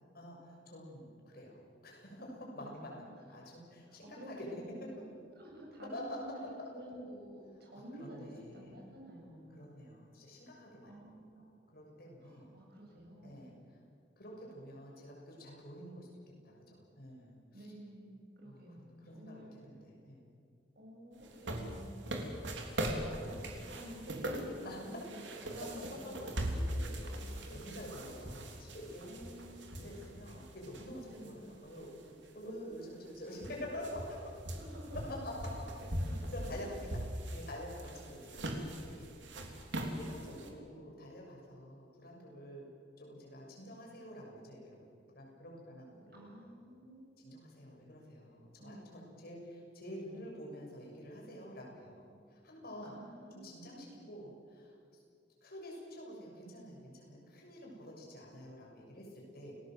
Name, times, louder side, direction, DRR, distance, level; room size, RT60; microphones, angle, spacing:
voice 1, 0.1-4.6 5.9-6.3 7.9-8.7 9.5-11.1 11.4-12.5 13.2-13.8 14.2-17.7 18.4-20.3 24.6-24.8 27.5-29.3 29.7-34.3 35.1-35.6 36.3-36.9 37.3-42.7 43.0-44.8 45.1-46.5 47.2-53.0 53.3-55.0 55.4-59.6, equal, 55° left, -1 dB, 6.9 m, -48 dB
voice 2, 2.6-3.0 4.0-5.0 5.3-9.6 10.8-11.5 12.2-13.4 17.5-19.5 20.8-22.2 22.9-26.0 26.3-28.1 29.0-30.0 31.1-31.5 32.4-33.3 34.5-35.1 35.8-36.2 39.7-40.7 46.1-47.3 48.6-49.1 52.8-54.0, equal, 60° right, -1 dB, 7.9 m, -51 dB
sound 1, 21.2-31.3 31.7-31.8 32.7-32.8 33.0-40.5, right 1 dB, 75° right, 3.3 m, -41 dB
29.0 x 19.5 x 7.8 m, 2.3 s
head